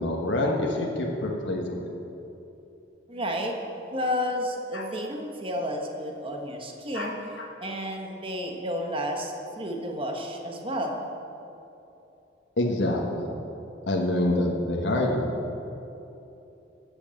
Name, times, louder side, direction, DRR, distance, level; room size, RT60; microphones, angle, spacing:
voice 1, 0.0-1.9 4.7-4.8 6.9-7.1 7.4-7.5 12.6-13.3 13.9-15.3, left 1 dB, 70° left, -1 dB, 1.4 m, -26 dB
voice 2, 3.1-3.6 3.9-7.1 7.6-11.0, equal, 30° right, 2 dB, 1.3 m, -31 dB
12.5 x 7.1 x 7.7 m, 2.9 s
head